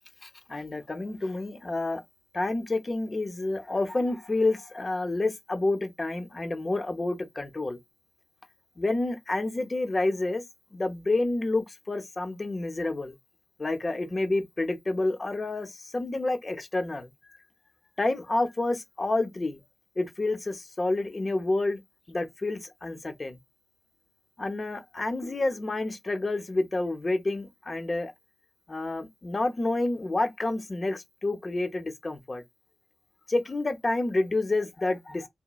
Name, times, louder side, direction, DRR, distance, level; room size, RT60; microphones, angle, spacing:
voice 1, 0.2-2.0 2.3-7.8 8.8-10.4 10.7-13.2 13.6-17.1 18.0-19.6 20.0-21.8 22.1-23.4 24.4-28.1 28.7-32.4 33.3-35.3, left 2 dB, 40° left, 0.7 m, -29 dB
3.0 x 2.1 x 2.3 m
cardioid pair, 50°, 0 cm